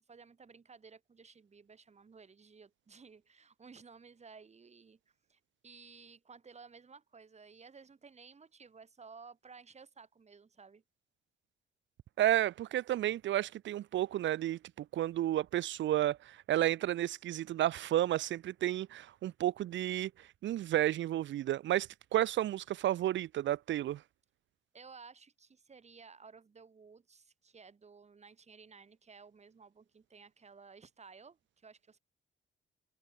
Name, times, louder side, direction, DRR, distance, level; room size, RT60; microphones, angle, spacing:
voice 1, 0.1-5.0 5.3-10.8 24.7-32.0, right 5 dB, 35° right, 3.4 m, -56 dB
voice 2, 12.2-20.1 20.4-24.0, right 13 dB, 70° right, 0.8 m, -32 dB
cardioid pair, 90°, 20 cm